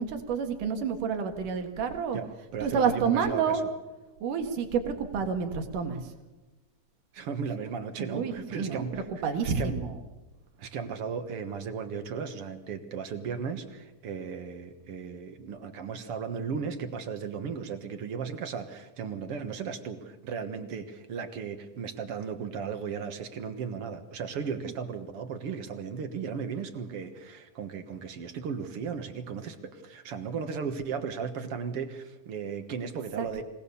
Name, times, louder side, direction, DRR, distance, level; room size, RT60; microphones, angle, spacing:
voice 1, 0.0-2.2 2.6-3.6 4.2-6.0 8.0-8.9 9.2-9.9 33.2-33.3, right 6 dB, 90° right, 5 dB, 3.3 m, -29 dB
voice 2, 2.1-3.6 7.1-9.1 9.4-9.8 10.6-33.4, right 6 dB, 55° right, 8 dB, 2.1 m, -36 dB
25.0 x 18.0 x 7.0 m, 1.1 s
omnidirectional pair, 3.6 m